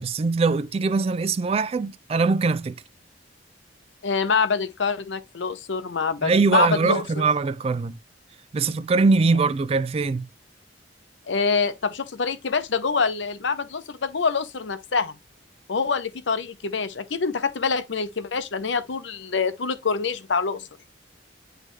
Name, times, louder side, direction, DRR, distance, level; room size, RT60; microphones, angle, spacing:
voice 1, 0.0-2.7 6.2-7.9 8.5-10.3, right 4 dB, 30° right, 0.3 m, -22 dB
voice 2, 4.0-7.2 11.3-15.2 15.7-20.7, left 5 dB, 80° left, 0.7 m, -25 dB
9.1 x 3.3 x 3.2 m
head